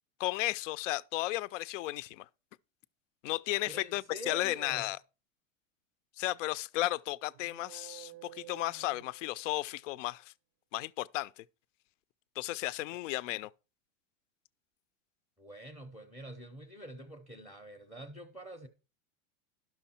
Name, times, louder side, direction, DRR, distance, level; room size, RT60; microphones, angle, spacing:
voice 1, 0.2-2.2 3.2-5.0 6.2-10.2 10.7-11.4 12.4-13.5, left 17 dB, 70° left, 0.5 m, -34 dB
voice 2, 3.6-4.9 15.4-18.7, right 1 dB, ahead, 0.6 m, -46 dB
sound 1, 7.3-9.8, right 15 dB, 45° right, 0.5 m, -52 dB
11.5 x 6.3 x 4.2 m
supercardioid pair, 155°, 39 cm